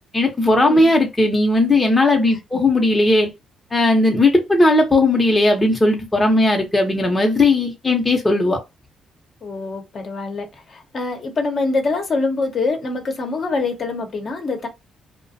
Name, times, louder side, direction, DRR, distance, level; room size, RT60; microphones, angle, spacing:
voice 1, 0.1-3.3 3.7-8.6, left 2 dB, 20° left, 0.7 m, -17 dB
voice 2, 9.4-14.7, left 3 dB, 50° left, 0.8 m, -24 dB
2.4 x 2.1 x 2.6 m
cardioid pair, 90°, 0 cm